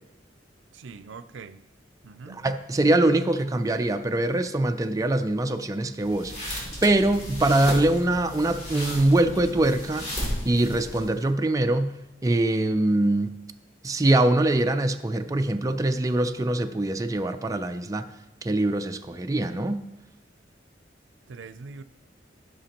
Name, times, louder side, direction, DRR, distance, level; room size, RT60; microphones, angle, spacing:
voice 1, 0.7-1.6 2.0-2.5 21.3-21.8, right 4 dB, 90° right, 13 dB, 0.5 m, -42 dB
voice 2, 2.4-6.3 6.8-10.1 10.4-11.9 12.2-13.3 13.8-18.1 18.4-19.8, right 1 dB, 20° right, 7 dB, 0.4 m, -23 dB
sound 1, 6.0-11.3, equal, 40° left, 2.9 m, -35 dB
16.5 x 5.8 x 2.9 m, 0.95 s
head